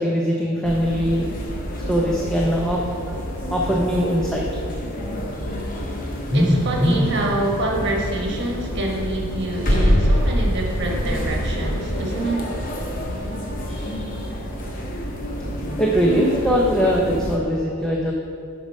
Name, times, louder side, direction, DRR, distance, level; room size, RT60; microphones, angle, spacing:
voice 1, 0.0-1.4 1.9-3.2 3.5-4.4 6.3-7.1 13.7-14.3 15.8-18.1, equal, 5° left, -2 dB, 0.6 m, -21 dB
sound 1, 0.6-17.4, equal, 40° left, 0.9 m, -26 dB
voice 2, 6.3-12.5, right 1 dB, 50° right, 0 dB, 1.3 m, -26 dB
8.5 x 5.4 x 5.1 m, 2.4 s
head